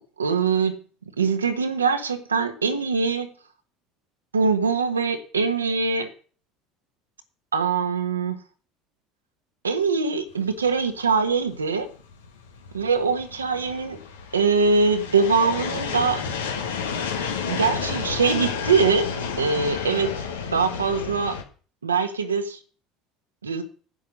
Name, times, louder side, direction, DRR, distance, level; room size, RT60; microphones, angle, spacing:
voice 1, 0.2-0.7 1.2-3.3 4.3-6.1 7.5-8.4 9.6-11.9 12.7-14.0 14.3-16.2 17.4-19.1 19.4-20.1 20.5-21.4 21.8-22.6 23.4-23.6, right 5 dB, 85° right, 8 dB, 1.4 m, -22 dB
sound 1, 10.5-21.4, left 6 dB, 75° left, 1.6 m, -31 dB
11.0 x 8.2 x 6.4 m, 0.41 s
figure-of-eight pair, 65°, 0 cm